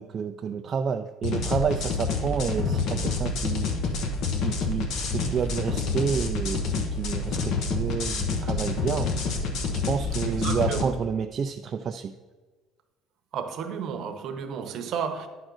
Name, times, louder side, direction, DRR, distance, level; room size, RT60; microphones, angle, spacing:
voice 1, 0.0-3.7 4.4-9.1 9.9-12.1, right 6 dB, 30° right, 0.3 m, -29 dB
sound 1, 1.2-10.8, left 4 dB, 60° left, 1.0 m, -28 dB
voice 2, 10.2-11.0 13.3-15.3, right 7 dB, 50° right, 0.9 m, -32 dB
10.0 x 3.8 x 6.2 m
cardioid pair, 150°, 0 cm